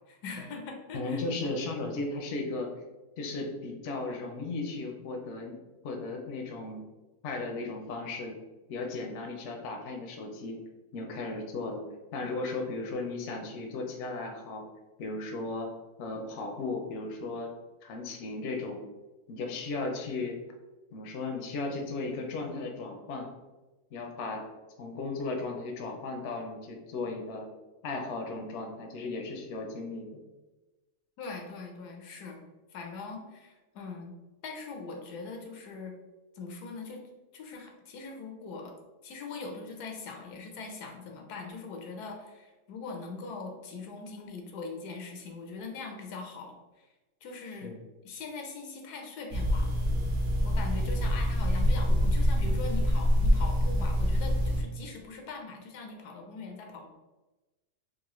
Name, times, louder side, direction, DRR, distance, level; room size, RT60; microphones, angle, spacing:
voice 1, 0.1-1.5 31.2-32.4 32.7-34.1 34.4-35.9 36.3-37.0 37.3-38.7 39.0-46.9 47.2-47.7 48.0-49.8 50.4-56.9, left 4 dB, 85° left, 2 dB, 1.2 m, -41 dB
voice 2, 0.9-2.7 3.2-5.6 5.8-6.8 7.2-8.3 8.7-10.6 10.9-11.8 12.1-14.6 15.0-15.7 16.0-17.5 17.8-18.8 19.3-20.4 20.9-23.3 23.9-24.4 24.8-27.5 27.8-30.2 47.6-47.8, left 3 dB, 60° left, 2 dB, 0.8 m, -35 dB
sound 1, 49.3-54.6, equal, 60° right, 0.5 m, -26 dB
3.8 x 2.6 x 3.0 m, 1.1 s
omnidirectional pair, 1.6 m